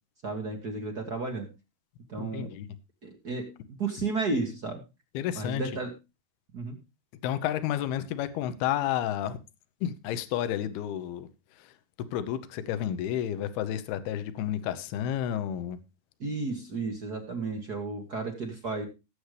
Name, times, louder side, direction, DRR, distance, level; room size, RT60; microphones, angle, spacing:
voice 1, 0.2-1.5 2.1-2.5 3.0-4.8 5.3-5.9 6.5-6.8 16.2-18.8, right 3 dB, 55° right, 1.1 m, -33 dB
voice 2, 2.2-2.7 5.1-5.6 7.2-9.4 9.8-11.3 11.6-11.7 12.1-15.8, left 11 dB, 80° left, 2.9 m, -31 dB
18.0 x 8.0 x 3.3 m
omnidirectional pair, 4.6 m